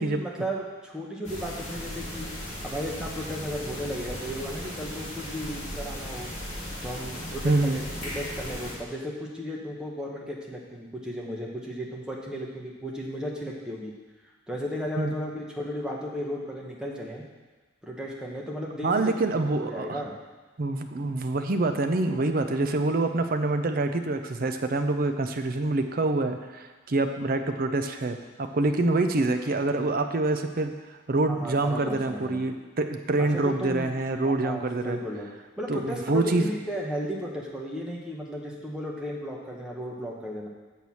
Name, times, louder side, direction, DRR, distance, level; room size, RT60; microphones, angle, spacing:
voice 1, 0.0-2.3 2.6-6.3 6.8-13.9 14.5-17.2 17.8-19.3 19.6-20.1 31.3-32.4 33.2-33.9 34.2-35.3 35.6-40.5, equal, 5° right, -2 dB, 1.0 m, -34 dB
sound 1, 1.2-8.7, left 1 dB, 35° left, 2.6 m, -37 dB
voice 2, 7.4-7.8 15.0-15.1 18.8-20.0 20.6-30.7 31.1-35.0 35.7-36.5, right 2 dB, 45° right, 7 dB, 0.5 m, -26 dB
7.9 x 4.6 x 7.0 m, 1.3 s
head